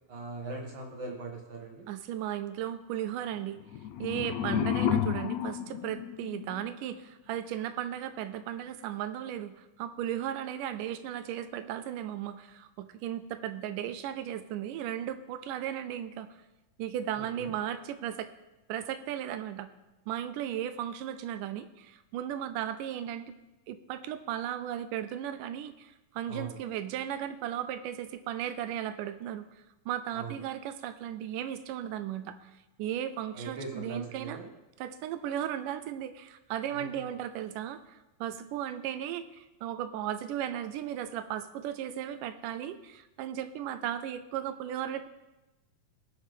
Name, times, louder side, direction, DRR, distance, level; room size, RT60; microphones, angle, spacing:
voice 1, 0.1-1.9 17.1-17.5 26.3-26.6 30.1-30.3 33.3-34.5 36.7-37.1, right 3 dB, 50° right, 0 dB, 1.5 m, -40 dB
voice 2, 1.9-3.6 4.0-16.4 16.8-18.3 18.7-19.7 20.1-23.3 23.7-29.4 29.9-32.5 32.8-34.4 34.8-45.1, right 10 dB, 85° right, 12 dB, 2.1 m, -36 dB
sound 1, 3.6-6.7, left 9 dB, 80° left, 1.7 m, -31 dB
19.5 x 7.3 x 3.5 m, 1.0 s
omnidirectional pair, 3.8 m